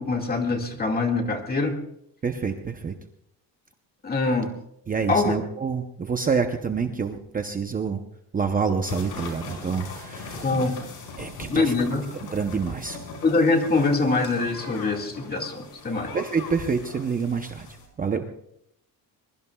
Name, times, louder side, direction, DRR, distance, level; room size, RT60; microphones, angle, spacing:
voice 1, 0.0-1.8 4.0-4.6 5.1-5.4 10.4-10.8 11.5-12.0 13.2-16.1, left 3 dB, 25° left, 2 dB, 2.0 m, -24 dB
voice 2, 2.2-3.0 4.9-8.0 8.3-10.5 11.2-11.7 12.3-13.0 16.1-17.7 18.0-18.3, right 5 dB, 20° right, 5 dB, 0.7 m, -27 dB
sound 1, 8.8-17.9, left 4 dB, 75° left, 5.4 m, -39 dB
23.5 x 22.0 x 2.3 m, 0.76 s
cardioid pair, 170°, 39 cm